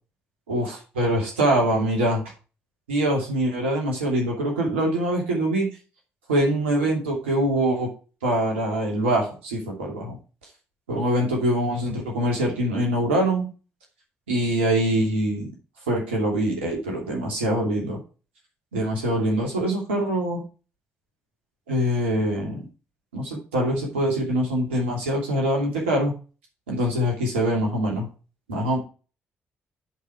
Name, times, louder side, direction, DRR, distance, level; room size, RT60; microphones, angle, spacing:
voice 1, 1.0-2.2 2.9-5.7 6.3-7.9 8.2-10.2 10.9-13.5 14.3-15.5 15.9-18.0 18.7-20.4 21.7-22.6 23.1-26.1 26.7-28.1 28.5-28.8, right 1 dB, 80° right, 0 dB, 2.7 m, -24 dB
10.0 x 4.9 x 4.7 m, 0.34 s
figure-of-eight pair, 40°, 6 cm